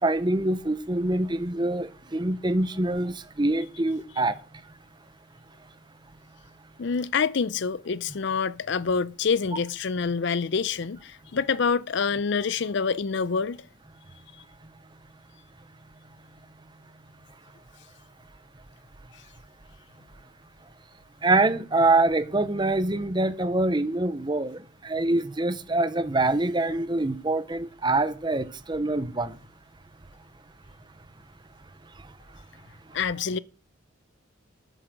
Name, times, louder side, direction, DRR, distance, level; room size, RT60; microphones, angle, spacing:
voice 1, 0.0-4.4 21.2-29.4 32.0-32.1 32.9-33.0, right 2 dB, 20° right, 0.7 m, -25 dB
voice 2, 6.8-13.7 32.9-33.4, left 5 dB, 55° left, 0.5 m, -26 dB
9.8 x 7.8 x 6.5 m
head